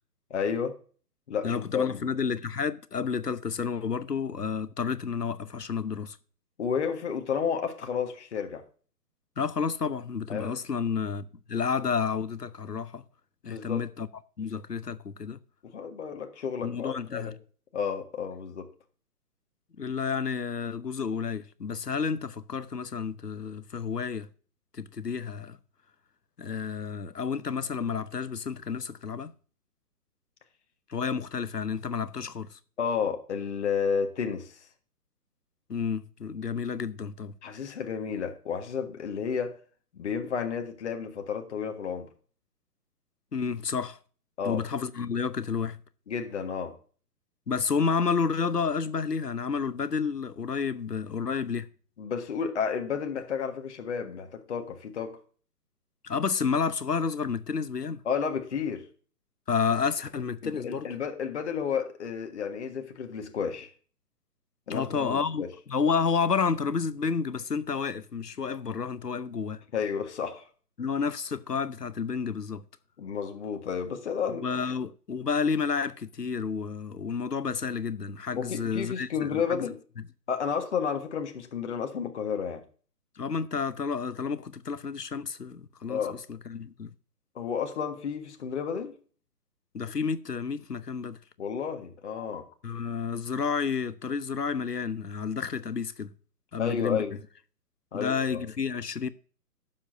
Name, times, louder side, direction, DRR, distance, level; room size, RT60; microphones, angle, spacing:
voice 1, 0.3-0.8 1.3-2.0 6.6-8.6 10.3-10.5 13.5-13.8 15.6-17.3 17.7-18.7 32.8-34.6 37.4-39.6 39.9-42.1 44.4-44.6 46.1-46.8 52.0-55.2 58.0-58.9 60.4-63.7 64.7-65.5 69.7-70.5 73.0-74.4 78.3-79.8 80.3-82.6 85.9-86.2 87.3-88.9 91.4-92.5 96.6-97.1 97.9-98.4, left 6 dB, 45° left, 1.5 m, -31 dB
voice 2, 1.4-6.2 9.4-13.0 13.4-14.1 14.4-15.4 16.6-17.3 19.8-24.3 24.7-25.6 26.4-29.3 30.9-32.6 35.7-37.3 43.3-44.0 44.4-45.8 47.5-51.7 56.0-58.0 59.5-60.9 64.7-65.4 65.7-69.6 70.8-72.6 74.3-79.7 83.2-86.9 89.7-91.2 92.6-96.1 96.5-97.0 97.9-99.1, left 5 dB, 80° left, 0.9 m, -30 dB
15.5 x 7.3 x 2.6 m
figure-of-eight pair, 130°, 47 cm